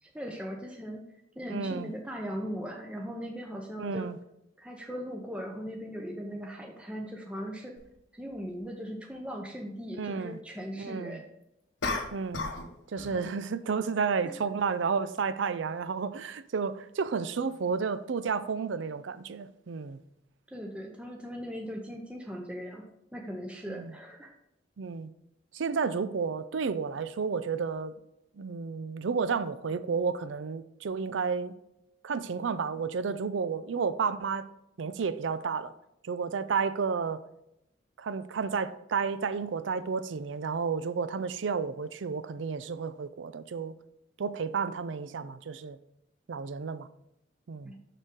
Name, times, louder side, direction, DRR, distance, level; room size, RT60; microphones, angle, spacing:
voice 1, 0.0-1.0 1.4-4.1 4.6-7.8 8.1-11.2 14.2-14.3 20.5-24.3 47.6-47.8, equal, 5° right, 0.6 m, -39 dB
voice 2, 1.5-1.9 3.8-4.2 10.0-10.4 10.8-11.2 12.1-12.5 12.9-20.0 23.7-23.9 24.8-25.1 25.5-28.0 28.4-31.6 32.0-34.5 34.8-35.7 36.0-37.2 38.0-43.8 44.2-45.8 46.3-46.9 47.5-47.7, right 5 dB, 80° right, 0.5 m, -31 dB
sound 1, 7.8-7.9 11.8-12.7 13.0-13.3, left 3 dB, 75° left, 1.1 m, -33 dB
6.7 x 6.3 x 3.7 m
head